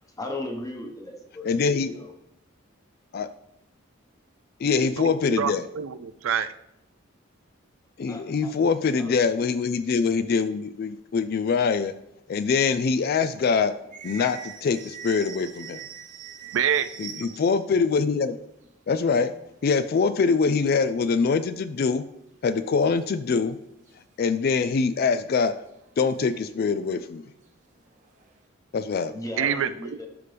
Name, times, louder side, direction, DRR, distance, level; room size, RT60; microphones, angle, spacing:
voice 1, 0.0-2.1 8.1-8.5 9.0-9.2 29.1-30.1, left 1 dB, 15° left, 2 dB, 1.1 m, -37 dB
voice 2, 1.4-1.9 3.1-3.3 4.6-5.7 8.0-11.9 12.3-13.7 14.0-15.8 17.0-18.4 18.9-19.3 19.6-22.0 22.4-23.6 24.2-25.6 26.0-27.2 28.7-29.1, left 5 dB, 50° left, 13 dB, 0.3 m, -24 dB
voice 3, 5.0-6.5 16.5-16.9 17.2-17.3 29.4-29.7, right 8 dB, 75° right, 12 dB, 0.4 m, -26 dB
sound 1, 12.7-17.7 18.0-18.1 18.3-19.7 20.2-20.3 20.5-21.0 21.8-21.9 22.5-23.4 23.9-24.0 25.1-25.2 25.7-27.1 27.4-28.4, right 7 dB, 40° right, 0.8 m, -44 dB
12.5 x 5.2 x 3.4 m, 0.84 s
head